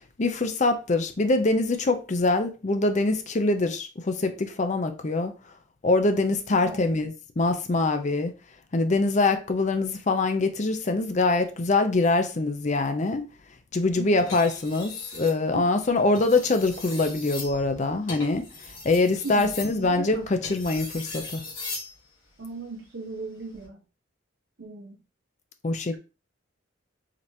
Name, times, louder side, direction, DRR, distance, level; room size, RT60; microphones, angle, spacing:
voice 1, 0.2-5.3 5.8-8.3 8.7-13.2 13.7-18.4 18.8-21.4 25.6-26.0, left 3 dB, 35° left, 0.5 m, -24 dB
voice 2, 6.5-6.8 14.0-14.3 15.5-15.7 19.2-19.5 19.8-20.6 22.4-23.8 24.6-25.0, right 3 dB, 60° right, 0.5 m, -37 dB
sound 1, 14.2-15.4 16.0-21.9 23.4-23.7, left 3 dB, 85° left, 2.0 m, -39 dB
5.1 x 2.9 x 2.7 m
head